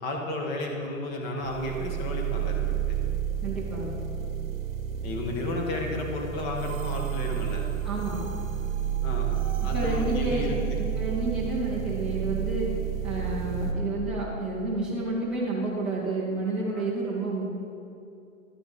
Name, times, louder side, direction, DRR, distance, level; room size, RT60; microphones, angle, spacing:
voice 1, 0.0-3.0 5.0-7.6 9.0-9.4 9.6-10.8, left 1 dB, 25° left, 1 dB, 1.3 m, -32 dB
sound 1, 1.4-13.7, right 9 dB, 45° right, 1.3 m, -30 dB
voice 2, 3.4-3.9 7.8-8.3 9.7-12.7 13.0-17.5, right 2 dB, ahead, -8 dB, 0.4 m, -30 dB
11.5 x 6.0 x 5.2 m, 2.6 s
hypercardioid pair, 135°, 40 cm